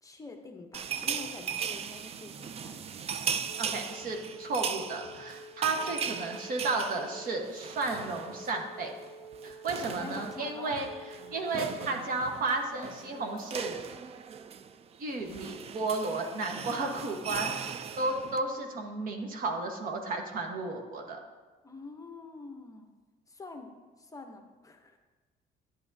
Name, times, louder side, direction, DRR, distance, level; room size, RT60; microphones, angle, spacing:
voice 1, 0.0-3.0 5.7-6.4 10.0-10.8 21.6-22.9 23.3-23.7 24.0-25.0, left 3 dB, 20° left, 4 dB, 0.7 m, -46 dB
sound 1, 0.7-8.6 8.9-9.1 9.3-18.4, right 7 dB, 35° right, 0.4 m, -38 dB
Wind instrument woodwind instrument, 3.5-11.9, right 1 dB, 60° left, 0.6 m, -48 dB
voice 2, 3.6-8.9 9.4-10.9 11.3-13.8 15.0-21.2, right 3 dB, 55° right, 3 dB, 1.2 m, -33 dB
9.8 x 8.5 x 2.7 m, 1.3 s
cardioid pair, 110°, 17 cm